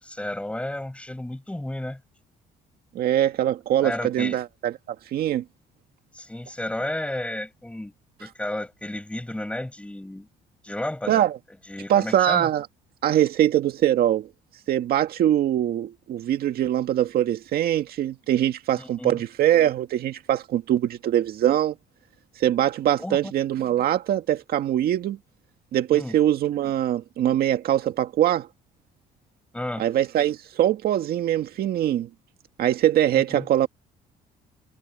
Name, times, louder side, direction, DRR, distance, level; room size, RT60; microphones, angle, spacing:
voice 1, 0.0-2.0 3.8-4.4 6.1-7.9 8.2-10.3 10.6-11.2 11.7-12.5 18.8-19.1 23.0-23.3 25.9-26.2 29.5-29.9 33.1-33.5, left 1 dB, 5° left, 6.6 m, -32 dB
voice 2, 3.0-5.4 11.1-11.4 11.9-12.7 13.0-14.3 14.7-21.7 22.4-25.2 25.7-28.5 29.8-32.1 32.6-33.7, right 11 dB, 65° right, 1.9 m, -22 dB
cardioid pair, 110°, 17 cm